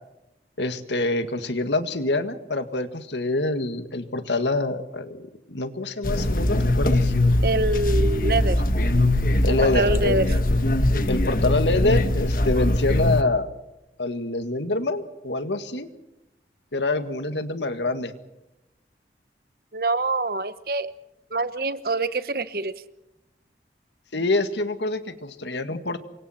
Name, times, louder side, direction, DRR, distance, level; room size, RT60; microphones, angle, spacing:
voice 1, 0.6-7.1 9.4-10.2 11.1-13.5 14.0-15.9 16.7-18.1 24.1-26.1, left 2 dB, 90° left, 9 dB, 1.9 m, -26 dB
sound 1, 6.0-13.2, left 1 dB, 50° left, 1.5 m, -21 dB
voice 2, 7.4-8.6 9.5-10.3 19.7-20.9 21.3-22.7, right 2 dB, 55° right, 13 dB, 1.1 m, -25 dB
28.5 x 24.5 x 4.4 m, 0.92 s
head